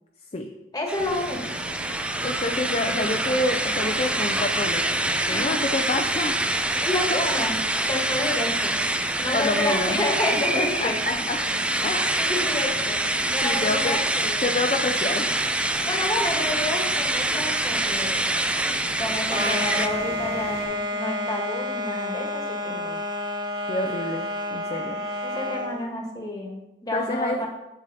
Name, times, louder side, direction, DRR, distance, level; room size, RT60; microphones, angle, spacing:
voice 1, 0.7-1.6 2.8-3.4 5.2-5.6 6.8-7.6 7.9-8.8 9.2-11.0 12.2-13.0 13.3-14.5 15.9-18.4 19.0-22.8 24.7-27.5, left 1 dB, 20° left, 0 dB, 1.6 m, -30 dB
sound 1, 0.9-19.9, right 1 dB, 5° right, 0.4 m, -25 dB
Ocean, 1.0-20.6, right 1 dB, 75° right, 1.7 m, -39 dB
voice 2, 2.2-6.4 7.1-7.2 9.3-12.2 13.4-14.0 14.4-15.3 22.6-23.0 23.7-25.0 26.9-27.5, left 2 dB, 40° left, 2 dB, 0.6 m, -28 dB
sound 2, 19.3-25.8, left 1 dB, 25° right, 1.0 m, -29 dB
7.9 x 7.4 x 4.1 m, 0.93 s
head